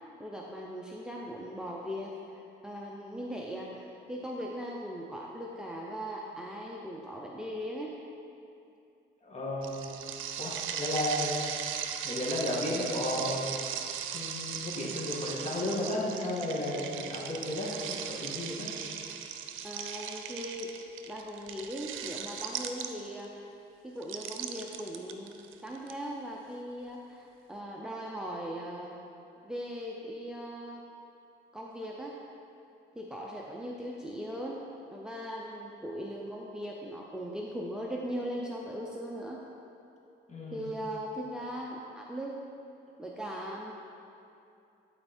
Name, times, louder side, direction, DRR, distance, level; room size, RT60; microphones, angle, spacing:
voice 1, 0.2-8.0 19.6-20.7 21.1-23.3 23.8-29.0 29.4-30.8 31.5-32.2 32.9-34.6 34.9-39.4 40.5-42.4 43.0-43.7, equal, 5° right, -2 dB, 0.7 m, -39 dB
voice 2, 9.2-9.9 10.4-11.4 12.0-13.6 14.1-18.7 40.3-40.7, left 1 dB, 35° left, -4 dB, 1.9 m, -33 dB
sound 1, 9.6-23.2 24.0-25.9, right 8 dB, 85° right, 0.6 m, -38 dB
11.5 x 4.4 x 4.4 m, 2.7 s
cardioid pair, 90°, 20 cm